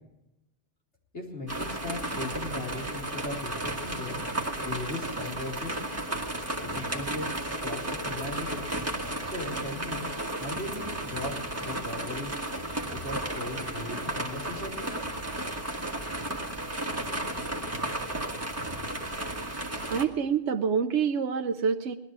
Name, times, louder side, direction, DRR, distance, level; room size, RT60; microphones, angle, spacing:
voice 1, 1.1-4.2 4.6-5.8 6.6-7.3 7.6-8.7 9.2-10.1 10.3-12.3 12.9-14.9, left 2 dB, 70° left, -3 dB, 4.2 m, -38 dB
sound 1, 1.5-20.0, right 1 dB, 15° right, 1.4 m, -33 dB
voice 2, 19.9-21.9, right 6 dB, 70° right, 5 dB, 1.0 m, -27 dB
19.5 x 12.0 x 4.7 m, 0.90 s
omnidirectional pair, 1.2 m